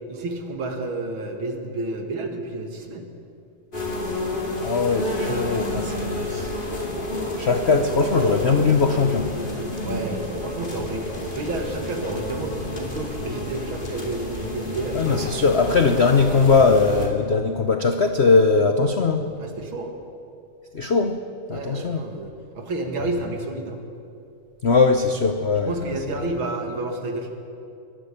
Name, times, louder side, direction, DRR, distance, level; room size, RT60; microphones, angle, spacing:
voice 1, 0.1-3.1 9.8-15.0 19.4-20.0 21.5-23.8 25.7-27.3, right 2 dB, 65° right, 4 dB, 2.8 m, -30 dB
sound 1, 3.7-17.1, left 1 dB, 20° left, 2.8 m, -30 dB
voice 2, 4.6-6.5 7.4-9.3 14.9-19.3 20.7-21.2 21.5-22.0 24.6-25.9, left 4 dB, 65° left, 7 dB, 0.6 m, -20 dB
24.0 x 11.5 x 10.0 m, 2.6 s
omnidirectional pair, 2.4 m